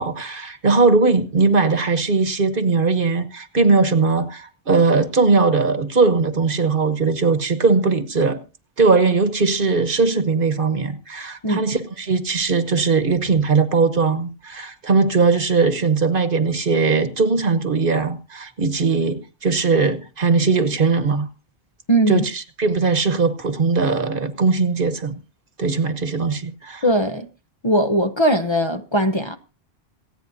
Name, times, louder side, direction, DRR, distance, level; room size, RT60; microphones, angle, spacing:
voice 1, 0.0-8.4 8.8-21.3 22.1-25.2 25.6-26.8, right 4 dB, 60° right, 1.4 m, -19 dB
voice 2, 21.9-22.2 26.8-27.3 27.6-29.4, right 1 dB, 30° left, 0.8 m, -19 dB
27.0 x 9.0 x 2.7 m
omnidirectional pair, 1.0 m